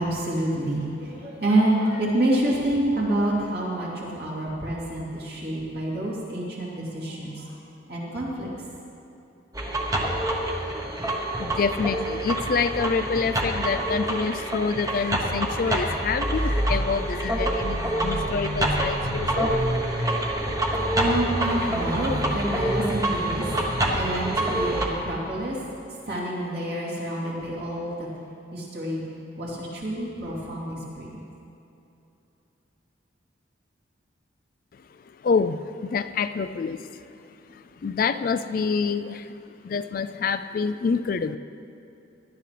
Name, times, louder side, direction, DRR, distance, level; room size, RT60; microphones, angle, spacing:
voice 1, 0.0-7.5 7.9-8.7 20.9-25.6 25.9-28.1 28.5-29.0 29.4-31.2, right 1 dB, 55° right, -5 dB, 3.0 m, -27 dB
sound 1, 9.5-24.9, right 1 dB, 20° right, 1.0 m, -26 dB
voice 2, 11.4-19.5 35.1-37.1 37.5-41.4, left 5 dB, 50° left, 11 dB, 0.3 m, -27 dB
17.5 x 11.5 x 3.3 m, 2.9 s
head